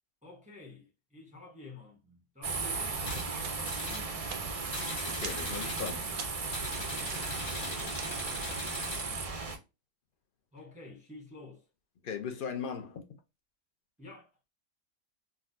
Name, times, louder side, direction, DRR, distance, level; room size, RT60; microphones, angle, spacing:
voice 1, 0.2-4.2 6.9-7.2 10.5-11.7 14.0-14.3, left 2 dB, 10° right, 0.6 m, -50 dB
sound 1, 2.4-9.6, right 4 dB, 50° right, 0.4 m, -36 dB
sound 2, 3.0-3.3 3.6-4.1 4.7-6.0 6.5-9.1, left 2 dB, 70° left, 1.7 m, -40 dB
sound 3, 3.4-8.6, right 6 dB, 90° right, 1.2 m, -48 dB
voice 2, 5.0-6.1 12.0-13.0, left 7 dB, 50° left, 0.6 m, -38 dB
3.9 x 2.3 x 2.5 m
omnidirectional pair, 1.4 m